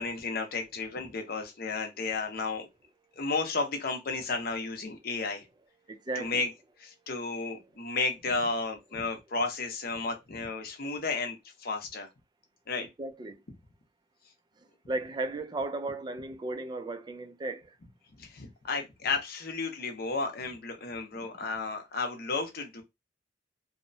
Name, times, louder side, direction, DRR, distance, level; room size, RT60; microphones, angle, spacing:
voice 1, 0.0-2.7 3.2-5.5 6.1-6.5 6.8-12.1 12.7-12.9 18.2-22.8, left 3 dB, 60° left, 0.7 m, -33 dB
voice 2, 6.1-6.4 13.0-13.4 14.9-17.6, right 2 dB, 25° right, 0.3 m, -35 dB
2.7 x 2.0 x 2.6 m
head